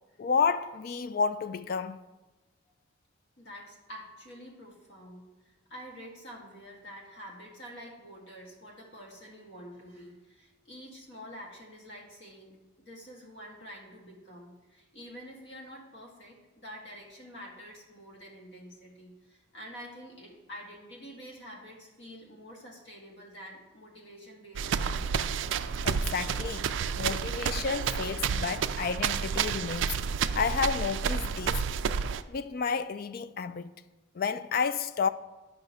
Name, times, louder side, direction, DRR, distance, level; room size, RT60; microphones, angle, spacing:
voice 1, 0.2-2.0 25.8-26.7 27.0-29.9 30.4-31.6 32.3-33.7 34.1-35.1, left 5 dB, 50° left, 0.3 m, -31 dB
voice 2, 3.4-25.2, equal, 65° left, 1.8 m, -47 dB
sound 1, 24.6-32.2, right 6 dB, 70° right, 0.3 m, -30 dB
9.5 x 5.7 x 4.1 m
head